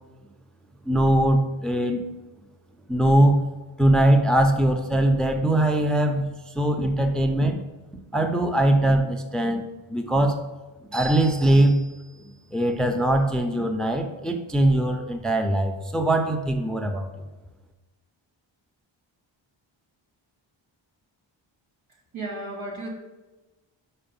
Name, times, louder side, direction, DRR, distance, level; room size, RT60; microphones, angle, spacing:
voice 1, 0.9-2.0 2.9-3.4 3.8-7.6 8.1-9.6 9.9-10.4 10.8-17.1, right 1 dB, ahead, 6 dB, 0.5 m, -21 dB
voice 2, 21.9-22.9, right 2 dB, 80° right, -2 dB, 2.0 m, -34 dB
5.7 x 4.8 x 5.2 m, 1.2 s
wide cardioid pair, 90°, 48 cm